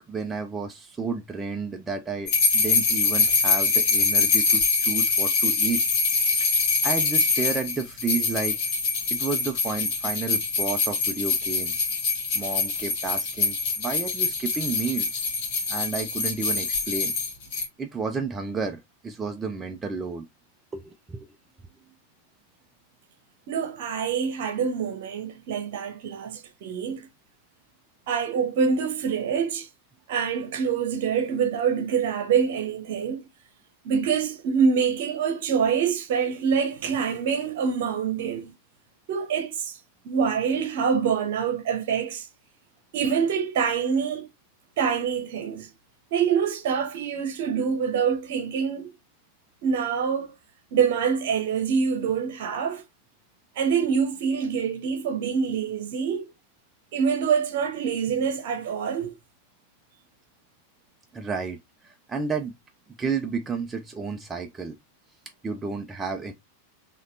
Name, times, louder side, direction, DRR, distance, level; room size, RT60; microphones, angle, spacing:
voice 1, 0.1-5.8 6.4-6.5 6.8-8.6 9.1-11.7 12.3-15.2 15.7-17.1 17.8-20.3 20.7-21.3 61.1-61.6 61.8-62.5 63.0-64.8 65.4-66.3, right 4 dB, 15° right, 0.5 m, -31 dB
sound 1, 2.3-17.6, left 4 dB, 50° left, 1.6 m, -24 dB
voice 2, 23.5-27.1 28.1-29.7 30.1-33.3 33.8-38.5 39.1-39.8 40.0-42.3 42.9-44.3 44.8-45.7 46.1-48.9 49.6-50.3 50.7-52.8 53.6-56.3 56.9-59.1, right 6 dB, 50° right, 0.9 m, -25 dB
4.1 x 3.0 x 2.6 m
figure-of-eight pair, 90°, 0 cm